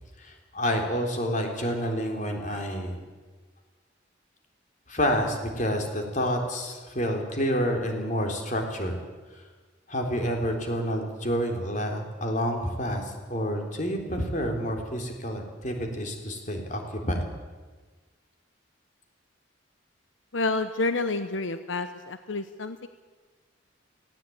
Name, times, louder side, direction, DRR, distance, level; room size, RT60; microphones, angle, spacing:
voice 1, 0.2-3.0 4.9-9.0 9.3-9.4 9.9-16.8 17.1-17.3, equal, 40° left, 3 dB, 3.7 m, -29 dB
voice 2, 20.3-22.9, left 3 dB, 85° left, 10 dB, 0.9 m, -29 dB
18.5 x 17.0 x 9.2 m, 1.4 s
head